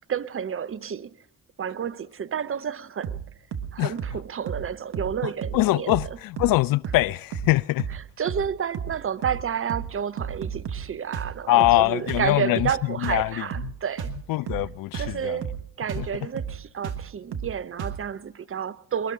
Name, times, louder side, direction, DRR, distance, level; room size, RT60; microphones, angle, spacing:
voice 1, 0.1-1.1 1.6-3.2 3.7-5.9 7.9-14.1 15.0-15.5 15.8-19.1, right 8 dB, 30° right, 0.6 m, -30 dB
sound 1, 3.0-3.3 3.5-3.7 4.0-4.2 4.5-4.7 4.9-5.2 5.4-5.6 5.9-6.1 6.4-6.6 6.8-7.1 7.3-7.5 7.8-8.0 8.3-8.5 8.7-9.0 9.2-9.4 9.7-9.9 10.2-10.9 11.1-11.3 11.6-11.8 12.1-12.3 12.6-12.8 13.0-13.3 13.5-13.7 14.0-14.2 14.5-14.7 14.9-15.2 15.4-15.6 15.9-16.1 16.4-16.6 16.8-17.1 17.3-17.5 17.8-18.0, right 7 dB, 50° right, 1.5 m, -32 dB
voice 2, 5.5-7.8 11.5-12.7 13.0-13.4 14.3-15.4 16.0-16.1, left 18 dB, 50° left, 0.4 m, -23 dB
21.5 x 12.5 x 3.8 m
hypercardioid pair, 45°, 47 cm